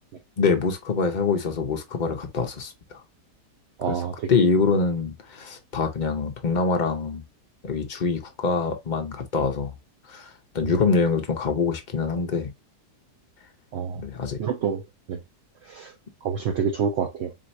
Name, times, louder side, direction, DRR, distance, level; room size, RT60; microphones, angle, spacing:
voice 1, 0.4-3.0 3.9-4.0 4.3-7.2 7.6-9.7 10.1-12.5 14.0-14.4, left 4 dB, 40° left, 0.7 m, -25 dB
voice 2, 3.8-4.4 10.6-10.8 13.7-14.0 14.4-15.2 15.6-15.9 16.2-17.3, right 6 dB, 70° right, 0.6 m, -28 dB
4.5 x 3.8 x 2.6 m
omnidirectional pair, 1.8 m